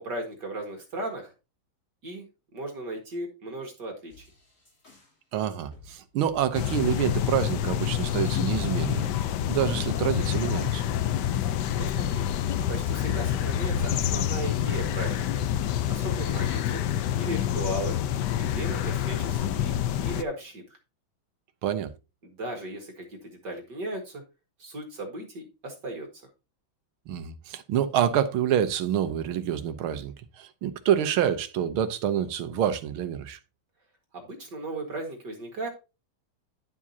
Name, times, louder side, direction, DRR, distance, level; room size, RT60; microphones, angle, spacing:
voice 1, 0.0-1.3 2.0-2.2 2.5-4.3 11.8-12.2 12.7-15.2 15.9-16.8 17.2-17.9 18.4-19.8 20.0-20.6 22.2-24.2 24.6-26.1 34.1-35.7, right 1 dB, 55° right, 2.4 m, -36 dB
sound 1, 4.1-5.2 5.5-6.9 7.2-8.5 8.9-11.9 12.3-13.6 13.9-14.0, left 4 dB, 35° left, 3.6 m, -53 dB
voice 2, 5.3-9.1 9.5-10.8 21.6-21.9 27.1-33.4, right 10 dB, 80° right, 1.7 m, -27 dB
sound 2, 6.5-20.2, left 10 dB, 70° left, 1.1 m, -27 dB
11.0 x 7.3 x 2.8 m
omnidirectional pair, 2.3 m